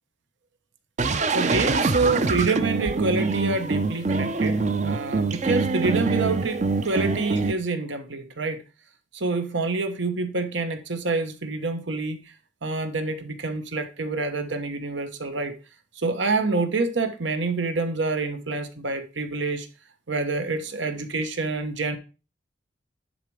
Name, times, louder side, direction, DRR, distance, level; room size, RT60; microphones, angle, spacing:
sound 1, 1.0-7.5, right 3 dB, 40° right, 0.5 m, -24 dB
voice 1, 1.3-8.6 9.1-12.3 12.6-15.5 16.0-19.7 20.1-22.0, right 3 dB, 80° right, 8 dB, 1.1 m, -27 dB
10.5 x 4.1 x 4.8 m, 0.32 s
head